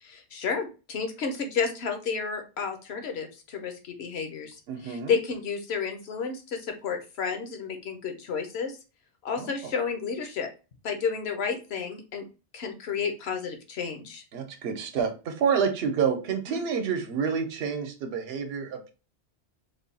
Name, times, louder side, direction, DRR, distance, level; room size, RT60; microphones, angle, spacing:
voice 1, 0.0-4.6 4.8-8.8 9.2-10.5 10.8-12.3 12.5-14.2 16.5-16.6, left 6 dB, 65° left, 5 dB, 1.0 m, -31 dB
voice 2, 4.7-5.2 9.4-9.5 14.3-18.9, right 6 dB, 65° right, 6 dB, 0.9 m, -28 dB
3.5 x 2.3 x 3.9 m, 0.32 s
omnidirectional pair, 1.2 m